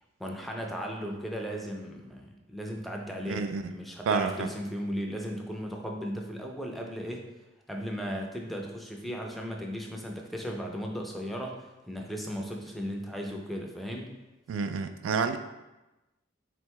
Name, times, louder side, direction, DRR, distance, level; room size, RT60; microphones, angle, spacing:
voice 1, 0.2-7.3 7.7-11.6 11.9-14.1, equal, ahead, 0 dB, 0.4 m, -36 dB
voice 2, 3.3-3.7 4.1-4.5 14.5-15.4, right 5 dB, 75° right, 8 dB, 0.3 m, -29 dB
3.7 x 2.2 x 4.5 m, 1.0 s
head